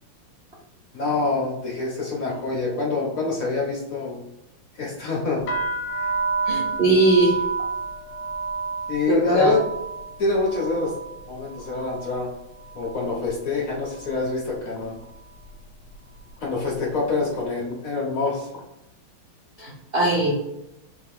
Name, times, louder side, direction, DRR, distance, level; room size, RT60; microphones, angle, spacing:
voice 1, 0.9-4.2 4.7-5.5 6.0-6.1 8.9-9.6 10.2-10.9 11.3-12.3 12.7-15.0 16.4-18.5, left 3 dB, 50° left, -3 dB, 1.1 m, -26 dB
sound 1, 5.5-13.3 13.6-14.3 14.9-15.2 15.4-16.9, right 4 dB, 70° left, 1.3 m, -31 dB
voice 2, 6.5-7.4 9.1-9.5 19.6-20.3, right 2 dB, 65° right, -4 dB, 0.5 m, -20 dB
4.3 x 2.8 x 3.6 m, 0.88 s
omnidirectional pair, 2.3 m